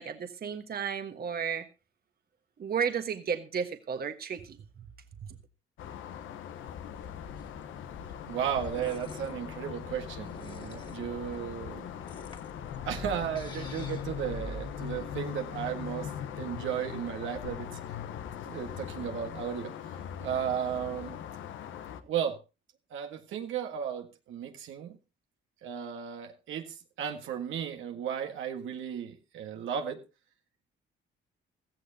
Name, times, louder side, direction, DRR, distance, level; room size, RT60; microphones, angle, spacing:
voice 1, 0.0-1.6 2.6-4.6, right 7 dB, 50° right, 1.4 m, -33 dB
sound 1, 5.8-22.0, left 9 dB, 80° left, 1.1 m, -40 dB
sound 2, 7.3-15.0, left 1 dB, 25° left, 1.9 m, -47 dB
voice 2, 8.3-11.9 12.8-16.1 16.4-17.7 18.4-21.2 22.0-22.4 22.9-25.0 25.6-30.0, right 9 dB, 80° right, 1.7 m, -35 dB
16.0 x 14.0 x 2.8 m
cardioid pair, 90°, 20 cm